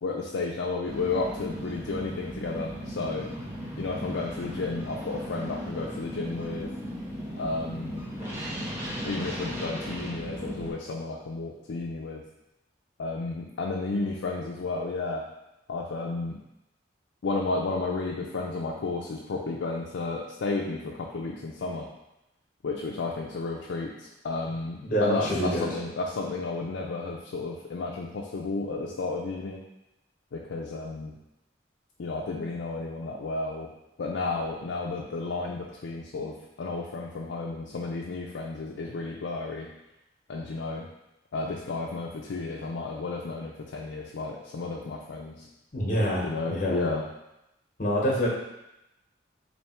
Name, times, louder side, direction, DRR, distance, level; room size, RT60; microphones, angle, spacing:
voice 1, 0.0-3.3 3.8-6.7 7.4-8.1 9.0-12.2 13.0-15.2 15.7-16.4 17.2-21.9 22.6-29.6 30.3-31.1 32.0-33.7 34.0-39.7 40.3-40.9 41.3-45.5 46.2-47.0, left 3 dB, 80° left, -2 dB, 0.4 m, -32 dB
sound 1, 0.9-10.7, equal, 15° right, 0.6 m, -36 dB
voice 2, 24.8-25.7 45.7-46.8 47.8-48.3, equal, 45° left, -3 dB, 1.0 m, -26 dB
3.3 x 2.7 x 4.3 m, 0.90 s
head